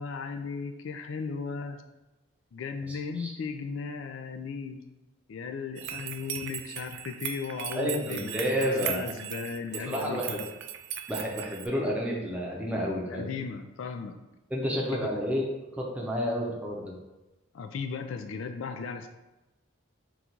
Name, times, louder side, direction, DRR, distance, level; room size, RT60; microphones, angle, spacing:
voice 1, 0.0-1.8 2.5-4.8 5.3-10.4 13.1-14.2 14.9-15.1 17.5-19.1, left 5 dB, 75° left, 7 dB, 0.3 m, -36 dB
voice 2, 2.9-3.3 5.8-5.9 7.8-9.0 9.7-10.4 11.1-13.4 14.5-15.5 15.7-16.9, equal, 5° right, -3 dB, 0.6 m, -30 dB
sound 1, 5.8-11.7, right 9 dB, 65° right, 0.3 m, -38 dB
3.9 x 2.4 x 4.4 m, 1.0 s
head